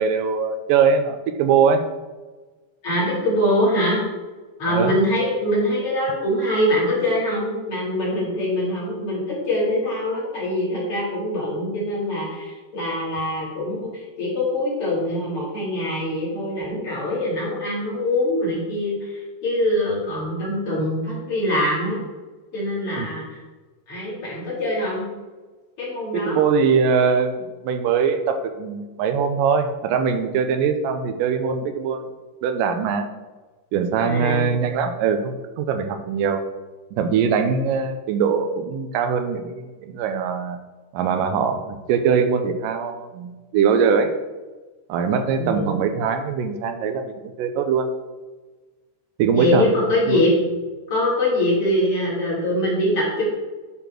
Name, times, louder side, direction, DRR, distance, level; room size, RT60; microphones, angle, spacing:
voice 1, 0.0-1.8 4.7-5.0 23.0-23.1 26.1-32.0 32.4-33.1 33.7-36.4 37.0-40.6 40.9-44.1 44.9-47.9 49.2-49.7 50.1-50.2, right 6 dB, 80° right, 7 dB, 2.3 m, -22 dB
voice 2, 2.8-4.0 4.6-22.0 22.5-23.4 23.9-25.1 25.8-26.4 34.0-34.5 45.4-45.7 49.3-50.3 50.9-53.2, left 1 dB, 40° left, -7 dB, 3.6 m, -23 dB
10.0 x 4.2 x 4.5 m, 1.3 s
omnidirectional pair, 3.9 m